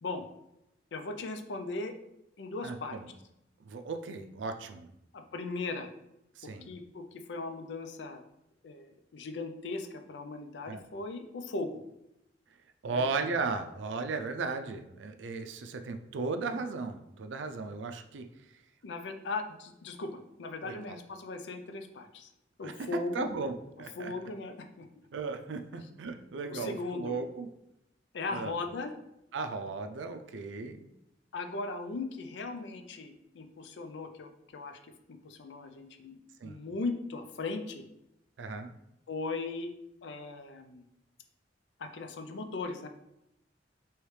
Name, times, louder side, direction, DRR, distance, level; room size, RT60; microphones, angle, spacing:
voice 1, 0.9-1.9 2.4-3.0 5.1-5.9 6.6-8.2 8.6-11.8 12.9-13.0 18.8-22.3 22.6-23.3 24.0-24.9 26.5-27.1 28.1-28.9 31.3-37.8 39.1-39.7 40.0-40.8 41.8-42.9, left 3 dB, 70° left, 7 dB, 0.5 m, -38 dB
voice 2, 2.6-3.1 3.6-4.9 6.4-6.7 10.7-10.8 12.8-18.3 20.6-21.0 22.6-24.1 25.1-27.5 28.3-28.5 29.3-30.9 36.4-36.6 38.4-38.7, right 4 dB, 80° right, 7 dB, 0.4 m, -36 dB
4.8 x 3.1 x 3.2 m, 0.85 s
head